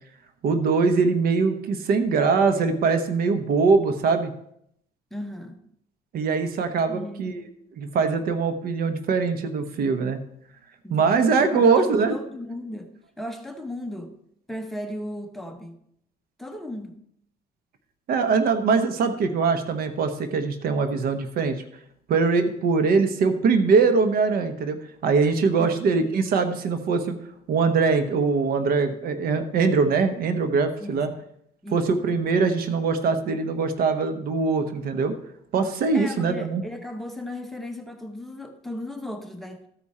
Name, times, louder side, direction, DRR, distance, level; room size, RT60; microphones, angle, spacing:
voice 1, 0.4-4.3 6.1-7.5 7.8-10.2 10.9-12.2 18.1-21.6 22.1-24.8 25.0-27.2 27.5-31.1 31.7-35.2 35.5-36.6, right 4 dB, 65° right, 1.0 m, -22 dB
voice 2, 5.1-5.6 6.9-7.3 10.8-11.8 12.1-12.9 13.2-14.1 14.5-15.8 16.4-17.0 25.6-25.8 30.8-31.0 31.6-31.8 35.9-39.6, left 1 dB, ahead, 1.1 m, -36 dB
14.0 x 4.9 x 4.2 m
cardioid pair, 110°, 17 cm